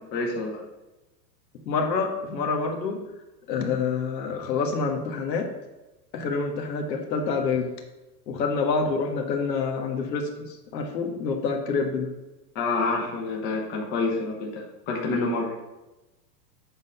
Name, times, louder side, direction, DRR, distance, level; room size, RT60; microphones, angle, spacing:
voice 1, 0.1-0.6 12.5-15.5, left 3 dB, 20° left, 0 dB, 0.9 m, -28 dB
voice 2, 1.7-3.0 3.5-5.5 6.1-7.7 8.3-10.3 10.7-12.1, left 4 dB, 80° left, 3 dB, 1.6 m, -27 dB
7.9 x 3.9 x 5.6 m, 1.0 s
supercardioid pair, 160°, 50 cm